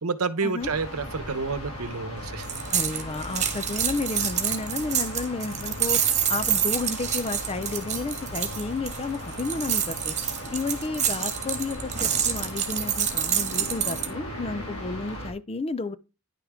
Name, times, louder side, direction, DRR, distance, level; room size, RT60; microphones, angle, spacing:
voice 1, 0.0-2.5, right 4 dB, 75° right, 0.9 m, -29 dB
sound 1, 0.6-15.3, left 1 dB, 85° left, 2.9 m, -37 dB
sound 2, 2.4-14.1, right 9 dB, 30° right, 1.6 m, -27 dB
voice 2, 2.7-16.0, left 3 dB, 25° left, 0.4 m, -32 dB
10.0 x 6.5 x 3.6 m
head